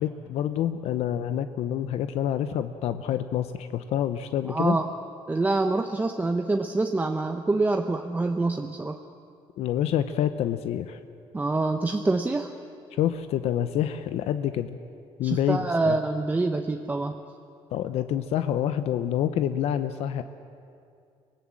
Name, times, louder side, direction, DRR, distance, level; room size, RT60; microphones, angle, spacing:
voice 1, 0.0-4.8 9.6-11.0 13.0-14.8 15.2-15.9 17.7-20.2, left 10 dB, 75° left, 10 dB, 0.7 m, -27 dB
voice 2, 4.5-4.9 5.3-9.0 11.3-12.5 15.2-17.2, right 3 dB, 15° right, 5 dB, 0.8 m, -26 dB
24.5 x 19.0 x 7.6 m, 2.5 s
cardioid pair, 130°, 11 cm